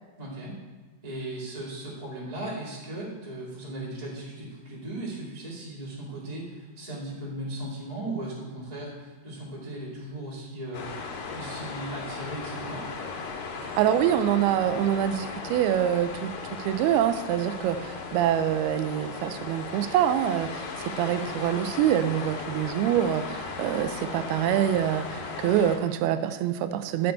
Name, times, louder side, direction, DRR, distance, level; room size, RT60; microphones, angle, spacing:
voice 1, 0.2-0.5 1.0-12.8, right 1 dB, 15° right, -6 dB, 1.4 m, -37 dB
sound 1, 10.7-25.8, left 4 dB, 75° left, 3.4 m, -37 dB
voice 2, 13.6-20.7 21.0-27.1, right 10 dB, 80° right, 10 dB, 2.4 m, -25 dB
12.0 x 6.7 x 4.4 m, 1.4 s
omnidirectional pair, 4.9 m